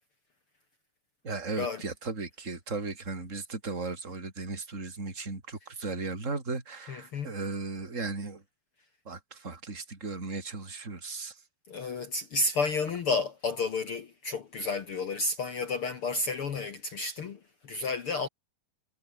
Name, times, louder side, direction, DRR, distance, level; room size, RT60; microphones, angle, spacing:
voice 1, 1.2-8.4 9.0-11.4, right 3 dB, 20° right, 4.3 m, -36 dB
voice 2, 6.9-7.3 11.7-18.3, left 3 dB, 55° left, 1.6 m, -31 dB
omnidirectional pair, 4.2 m